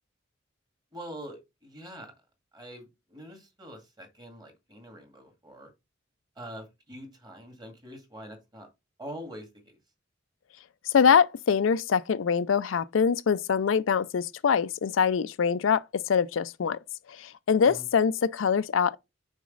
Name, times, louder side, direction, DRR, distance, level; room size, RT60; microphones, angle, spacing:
voice 1, 0.9-2.1 2.5-5.7 6.4-8.7 9.0-9.7 17.6-17.8, equal, 20° right, 2.1 m, -44 dB
voice 2, 10.9-16.8 17.1-19.0, left 6 dB, 90° left, 0.4 m, -24 dB
6.3 x 4.8 x 3.9 m
head